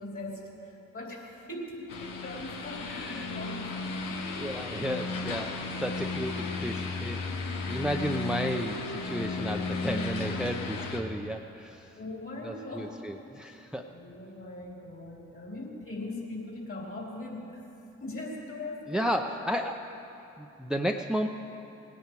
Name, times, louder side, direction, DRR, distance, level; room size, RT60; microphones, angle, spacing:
voice 1, 0.0-3.9 9.8-10.5 11.9-12.9 13.9-17.6 18.0-19.1, left 2 dB, 45° left, -2 dB, 4.0 m, -40 dB
sound 1, 1.9-11.0, left 3 dB, 85° left, 1.1 m, -34 dB
voice 2, 2.9-3.3 4.3-7.3 7.5-12.0 12.4-13.9 18.9-20.0 20.4-21.3, equal, ahead, 4 dB, 0.7 m, -33 dB
19.0 x 10.5 x 4.8 m, 3.0 s
supercardioid pair, 50°, 31 cm